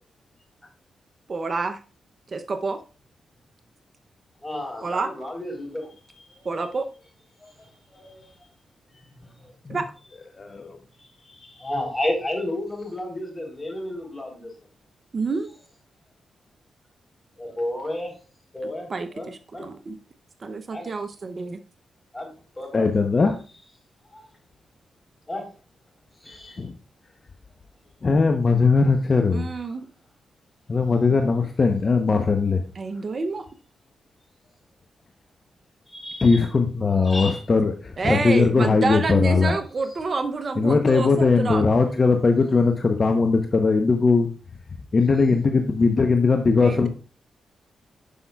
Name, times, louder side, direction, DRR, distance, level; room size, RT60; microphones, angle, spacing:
voice 1, 1.3-1.8 2.3-2.8 4.8-5.1 6.4-6.9 9.7-9.9 15.1-15.5 18.6-20.0 20.4-21.6 29.3-29.9 32.8-33.5 38.0-41.7 46.6-46.9, right 4 dB, 50° right, 0.6 m, -28 dB
voice 2, 4.4-6.5 7.4-8.3 8.9-9.0 9.4-9.5 11.0-14.5 17.4-18.1 18.5-18.9 19.1-19.3 19.5-19.7 20.7-20.9 22.1-22.3 22.5-22.9 24.1-24.3 25.3-25.4 26.2-26.6 35.9-36.4 37.0-37.4, left 1 dB, 20° left, 4.0 m, -32 dB
voice 3, 10.4-10.8 22.7-23.3 26.6-26.7 28.0-29.5 30.7-32.6 36.2-39.6 40.6-44.3 44.9-46.9, left 4 dB, 45° left, 0.8 m, -19 dB
10.0 x 5.4 x 2.3 m
supercardioid pair, 50°, 0 cm